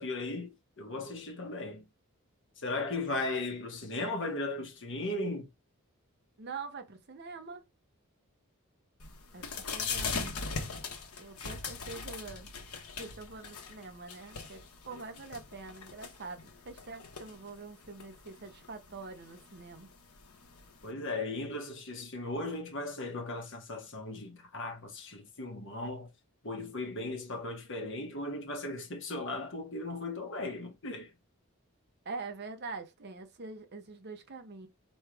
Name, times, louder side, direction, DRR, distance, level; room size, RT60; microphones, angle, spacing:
voice 1, 0.0-1.8 2.6-5.5 9.9-10.3 20.8-26.1 26.4-31.1, left 2 dB, 55° left, 1.4 m, -37 dB
voice 2, 6.4-7.6 9.3-9.5 9.7-10.4 11.2-12.5 13.0-19.9 32.0-34.7, right 4 dB, 50° right, 0.8 m, -44 dB
sound 1, 9.0-20.9, left 4 dB, 85° left, 1.2 m, -41 dB
4.6 x 3.1 x 3.4 m
head